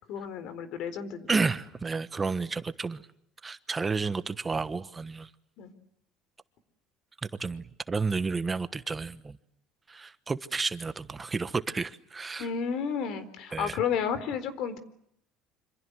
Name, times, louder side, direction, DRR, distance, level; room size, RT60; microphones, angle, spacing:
voice 1, 0.1-1.3 5.6-5.7 12.4-14.8, left 7 dB, 65° left, 4.0 m, -32 dB
voice 2, 1.3-3.1 3.4-5.3 7.4-9.4 9.9-12.5 13.5-13.8, right 4 dB, 20° right, 1.1 m, -31 dB
27.0 x 26.5 x 8.0 m
cardioid pair, 120°, 0 cm